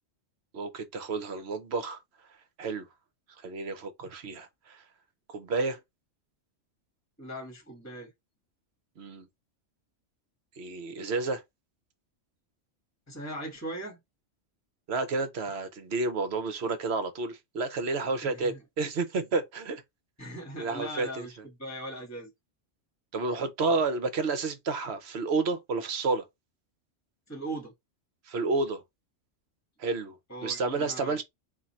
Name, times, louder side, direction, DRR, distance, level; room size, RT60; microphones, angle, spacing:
voice 1, 0.5-2.0 2.6-2.9 3.4-4.8 5.3-5.8 9.0-9.3 10.6-11.4 14.9-19.8 20.6-21.3 23.1-26.2 28.3-28.8 29.8-30.1 30.4-31.2, right 3 dB, 60° right, 1.0 m, -30 dB
voice 2, 7.2-8.1 13.1-14.0 18.2-18.6 20.2-21.3 21.6-22.3 27.3-27.7 30.3-31.2, right 1 dB, 15° left, 1.6 m, -39 dB
3.8 x 2.6 x 4.2 m
omnidirectional pair, 1.3 m